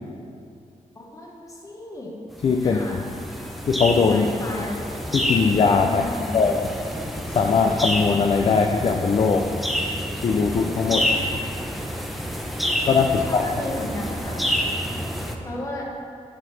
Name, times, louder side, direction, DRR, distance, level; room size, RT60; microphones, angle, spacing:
voice 1, 0.9-2.1 2.6-3.0 4.1-4.8 5.9-6.4 10.8-11.2 13.1-14.4 15.4-15.9, left 1 dB, 25° left, -1 dB, 1.1 m, -34 dB
voice 2, 2.4-3.0 3.7-4.3 5.1-6.0 6.3-6.7 7.3-9.5 10.2-11.0 12.9-13.4, left 5 dB, 45° left, 3 dB, 0.4 m, -20 dB
sound 1, 2.4-15.4, equal, ahead, 0.6 m, -28 dB
11.0 x 4.9 x 3.2 m, 2.4 s
wide cardioid pair, 145°, 13 cm